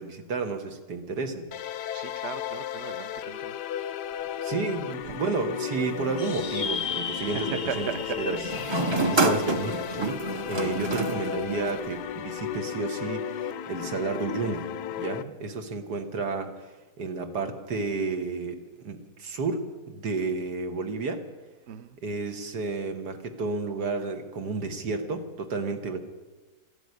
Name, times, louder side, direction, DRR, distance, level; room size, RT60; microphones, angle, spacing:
voice 1, 0.0-1.5 4.4-7.9 8.2-8.4 9.1-10.2 10.5-14.7 15.0-21.2 22.0-26.0, right 4 dB, 80° right, 5 dB, 2.0 m, -31 dB
sound 1, 1.5-15.2, left 10 dB, 85° left, 1.3 m, -34 dB
voice 2, 1.9-3.6 4.2-4.3 7.2-8.2 21.7-22.0, right 7 dB, 55° right, 11 dB, 0.9 m, -37 dB
sound 2, 5.7-7.0 8.4-12.0, right 3 dB, 25° right, 0.6 m, -29 dB
sound 3, 6.2-10.9, left 6 dB, 45° left, 0.6 m, -36 dB
13.5 x 11.0 x 9.5 m, 1.2 s
omnidirectional pair, 1.7 m